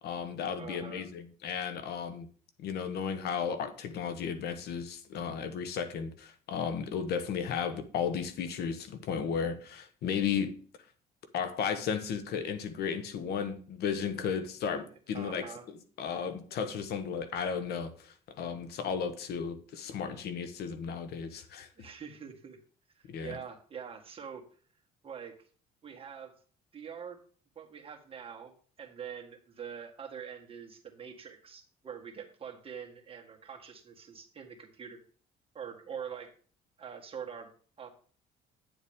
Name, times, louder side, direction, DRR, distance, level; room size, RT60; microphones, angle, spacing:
voice 1, 0.0-2.3 2.6-10.5 11.3-15.5 16.0-21.7 23.1-23.4, left 7 dB, 70° left, 1.2 m, -34 dB
voice 2, 0.6-1.0 14.8-14.9 15.1-15.7 21.8-22.6 23.0-24.4 25.0-25.3 25.8-26.3 26.7-27.2 27.6-35.0 35.5-36.3 36.8-37.5 37.8-37.9, right 7 dB, 35° right, 1.9 m, -44 dB
10.0 x 7.1 x 3.6 m
cardioid pair, 110°, 17 cm